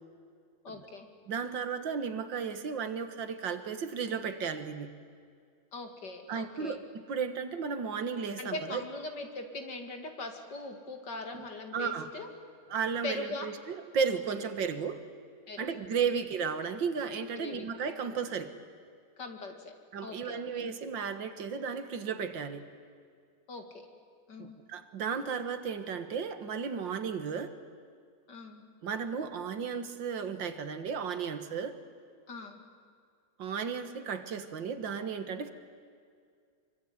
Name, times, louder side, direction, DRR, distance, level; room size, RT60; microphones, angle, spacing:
voice 1, 0.6-1.1 5.7-6.8 8.4-12.3 13.0-13.5 15.5-15.7 17.3-17.7 19.2-19.7 20.0-20.4 23.5-23.6 24.3-24.6 28.3-28.6 32.3-32.6, left 3 dB, 60° left, 5 dB, 3.0 m, -41 dB
voice 2, 1.3-5.0 6.3-8.8 11.7-12.1 12.7-15.0 15.6-18.5 19.9-22.6 24.4-27.5 28.8-31.8 33.4-35.5, right 6 dB, 75° right, 9 dB, 2.1 m, -34 dB
25.5 x 24.0 x 9.6 m, 2.2 s
omnidirectional pair, 2.1 m